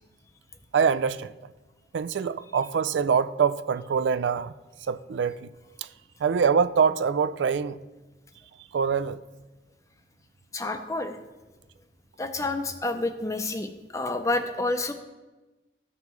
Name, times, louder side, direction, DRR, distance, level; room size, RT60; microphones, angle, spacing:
voice 1, 0.7-1.3 1.9-4.5 4.9-5.5 5.8-5.9 6.2-7.8 8.7-9.2, right 6 dB, 85° right, 0.4 m, -24 dB
voice 2, 10.5-11.2 12.2-14.9, left 2 dB, 15° left, 0.5 m, -29 dB
14.0 x 5.5 x 3.1 m
head